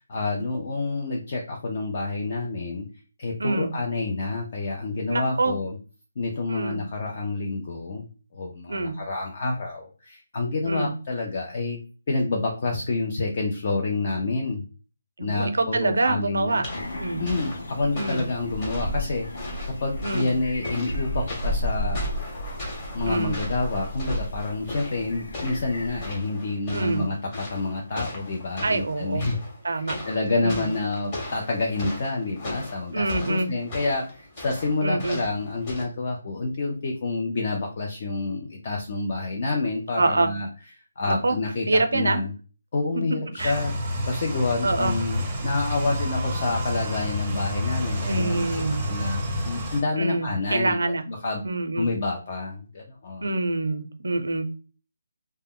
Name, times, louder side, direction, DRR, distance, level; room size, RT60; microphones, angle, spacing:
voice 1, 0.0-2.9 3.2-5.8 6.2-8.1 8.3-11.8 12.1-14.7 15.2-16.6 17.2-22.1 22.9-29.4 29.7-40.5 40.8-42.3 42.7-50.8 51.1-53.4, left 3 dB, 40° left, 0 dB, 0.5 m, -28 dB
voice 2, 3.4-3.7 5.1-5.6 6.5-6.8 8.7-9.0 10.6-10.9 15.2-16.7 17.0-17.2 17.9-18.2 20.0-20.3 23.1-23.4 26.7-27.0 28.6-29.3 29.6-29.9 30.4-30.7 32.9-33.5 34.8-35.2 39.9-40.3 41.1-41.4 41.7-42.2 42.9-43.0 43.4-43.5 44.6-44.9 48.1-48.9 50.0-51.0 51.4-51.9 53.2-54.5, right 2 dB, 85° right, 8 dB, 0.5 m, -25 dB
sound 1, 16.6-35.8, left 2 dB, 25° left, 1.0 m, -38 dB
sound 2, 16.7-26.1, equal, 90° left, 0.6 m, -33 dB
sound 3, 43.4-49.8, equal, 15° right, 0.6 m, -29 dB
2.1 x 2.0 x 3.6 m, 0.36 s
hypercardioid pair, 170°, 0 cm